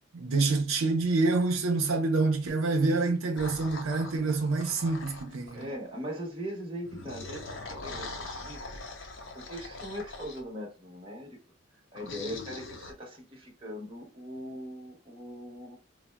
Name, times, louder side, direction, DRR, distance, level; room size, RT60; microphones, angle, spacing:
voice 1, 0.1-5.7, right 3 dB, 80° right, 0.6 m, -27 dB
sound 1, 3.4-5.7 6.8-10.4 11.9-12.9, left 3 dB, 60° left, 0.7 m, -42 dB
voice 2, 5.5-8.6 9.3-11.4 11.9-15.8, equal, 25° right, 0.9 m, -40 dB
3.9 x 2.1 x 2.2 m
head